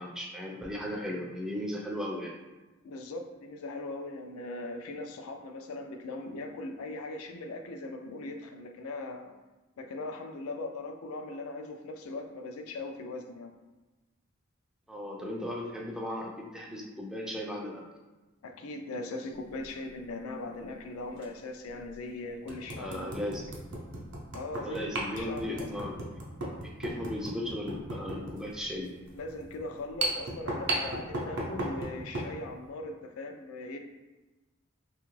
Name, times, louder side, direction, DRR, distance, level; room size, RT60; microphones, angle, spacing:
voice 1, 0.0-2.3 14.9-17.8 22.8-23.5 24.6-26.0 26.6-28.9, left 1 dB, 5° right, -1 dB, 0.3 m, -36 dB
voice 2, 2.8-9.3 9.8-13.5 18.4-23.1 24.3-25.7 29.2-33.8, left 2 dB, 90° left, 5 dB, 0.4 m, -39 dB
sound 1, 19.5-19.7 21.2-21.3 21.8-21.9 22.5-32.3, right 1 dB, 55° right, 0.6 m, -36 dB
2.8 x 2.3 x 3.1 m, 1.1 s
head